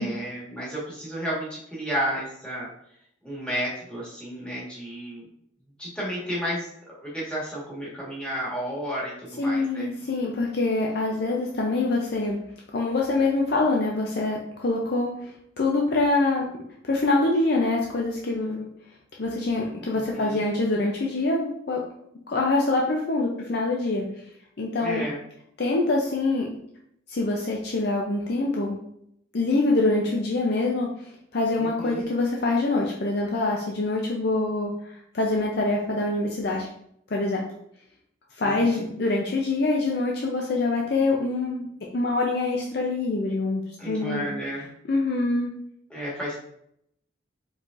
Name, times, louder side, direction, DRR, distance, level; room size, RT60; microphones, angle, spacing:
voice 1, 0.0-2.7 3.2-5.2 5.8-6.7 7.0-9.9 20.1-20.4 24.8-25.2 31.6-32.1 38.4-38.8 43.8-44.6 45.9-46.4, equal, 5° left, -7 dB, 1.5 m, -32 dB
voice 2, 9.4-12.4 12.7-16.5 16.8-18.7 19.2-21.8 22.3-24.1 24.6-25.0 25.6-26.5 27.1-28.8 29.3-30.9 31.3-34.7 35.1-36.7 37.1-37.4 38.4-44.3 44.5-45.5, left 2 dB, 55° left, -1 dB, 0.5 m, -25 dB
4.8 x 3.9 x 2.5 m, 0.73 s
head